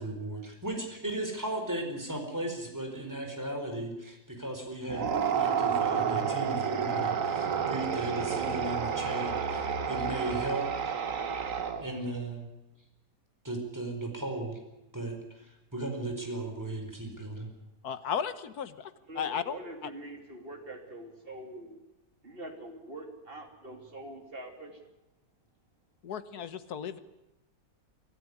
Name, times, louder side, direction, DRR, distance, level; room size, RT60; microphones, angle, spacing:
voice 1, 0.0-11.0 11.8-12.5 13.4-14.6 14.9-17.5, right 2 dB, 10° right, 3 dB, 4.5 m, -36 dB
sound 1, 4.9-12.1, right 7 dB, 60° right, 1.7 m, -30 dB
voice 2, 17.8-18.7 19.2-19.6 19.8-19.9 26.0-27.0, left 7 dB, 80° left, 13 dB, 1.6 m, -34 dB
voice 3, 19.1-21.8 22.2-24.9, right 1 dB, 35° right, 3 dB, 3.3 m, -44 dB
25.0 x 13.5 x 9.8 m, 0.98 s
omnidirectional pair, 1.6 m